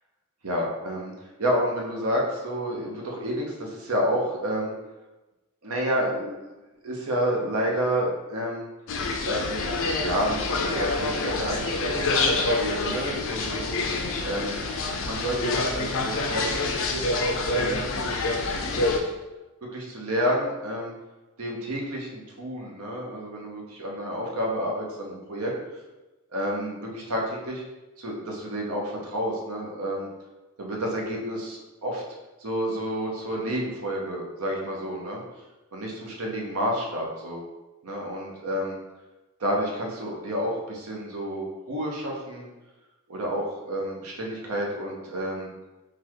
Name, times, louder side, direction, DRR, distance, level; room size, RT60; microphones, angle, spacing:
voice 1, 0.4-1.1 1.4-4.7 5.6-6.6 6.8-8.7 9.2-12.2 12.5-14.6 15.0-17.0 17.5-19.1 19.6-20.9 21.4-25.5 26.3-27.6 28.0-30.1 30.6-32.0 32.4-35.2 35.7-37.4 37.8-38.7 39.4-42.5 43.1-45.5, equal, 80° right, -1 dB, 0.9 m, -30 dB
sound 1, 8.9-19.0, left 3 dB, 65° left, 0.5 m, -27 dB
4.0 x 2.4 x 4.5 m, 1.1 s
head